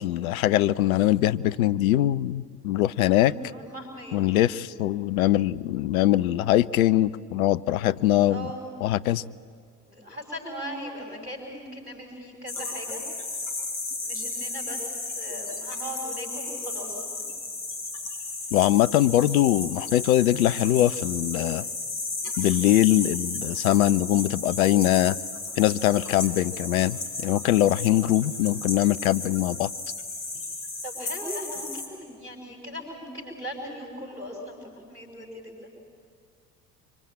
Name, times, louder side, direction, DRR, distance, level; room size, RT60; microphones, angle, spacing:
voice 1, 0.0-3.4 4.1-8.5 8.8-9.2 18.5-21.6 22.4-25.2 25.6-29.7, left 14 dB, 65° left, 17 dB, 0.7 m, -22 dB
voice 2, 3.1-4.2 8.3-8.7 9.9-13.0 14.0-17.3 30.8-35.7, equal, 85° right, 0 dB, 5.4 m, -39 dB
sound 1, 12.5-31.9, left 3 dB, 40° left, 5.3 m, -34 dB
25.0 x 24.5 x 8.7 m, 2.1 s
figure-of-eight pair, 60°, 46 cm